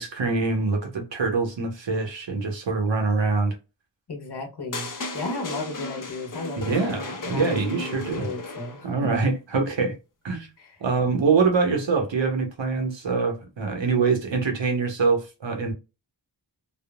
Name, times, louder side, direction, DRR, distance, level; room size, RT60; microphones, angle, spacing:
voice 1, 0.0-3.5 6.6-8.3 8.8-10.0 10.2-10.5 10.8-15.7, right 4 dB, 85° right, 0.9 m, -24 dB
voice 2, 4.1-9.2 10.6-10.8, left 3 dB, 60° left, 1.0 m, -35 dB
sound 1, 4.7-9.0, left 2 dB, 45° left, 0.7 m, -35 dB
3.5 x 2.0 x 2.3 m
wide cardioid pair, 50°, 44 cm